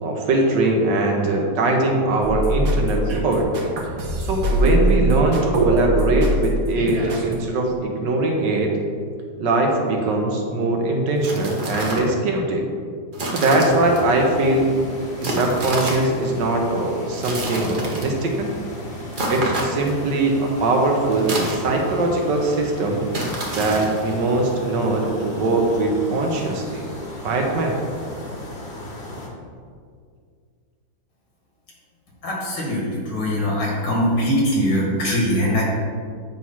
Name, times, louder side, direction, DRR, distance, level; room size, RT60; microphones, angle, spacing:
voice 1, 0.0-3.4 4.2-8.7 9.4-12.6 13.3-14.7 15.2-18.5 19.3-23.0 23.5-26.8 27.2-27.8, right 2 dB, 70° right, 1 dB, 1.5 m, -21 dB
sound 1, 2.2-7.4, right 2 dB, 55° right, 1.3 m, -22 dB
sound 2, 11.1-12.1 13.1-14.0 15.2-16.1 17.1-18.2 19.1-20.0 21.1-22.0 23.1-24.1, right 1 dB, 35° right, 0.8 m, -28 dB
sound 3, 13.5-29.3, left 1 dB, 40° left, 1.2 m, -36 dB
voice 2, 32.2-35.6, equal, 70° left, -3 dB, 2.3 m, -22 dB
8.3 x 3.1 x 5.6 m, 2.1 s
omnidirectional pair, 2.1 m